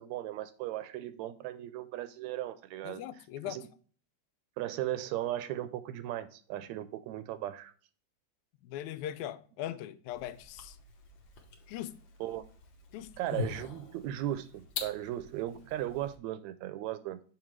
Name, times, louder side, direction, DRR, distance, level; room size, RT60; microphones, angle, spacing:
voice 1, 0.0-3.0 3.4-3.7 4.6-7.7 12.2-12.4 13.2-17.2, right 13 dB, 80° right, 1.7 m, -37 dB
voice 2, 2.8-3.6 8.6-10.8 11.7-12.0 12.9-13.1, left 12 dB, 85° left, 1.9 m, -40 dB
sound 1, 10.1-16.2, left 5 dB, 60° left, 1.3 m, -44 dB
7.4 x 5.0 x 3.1 m
omnidirectional pair, 3.4 m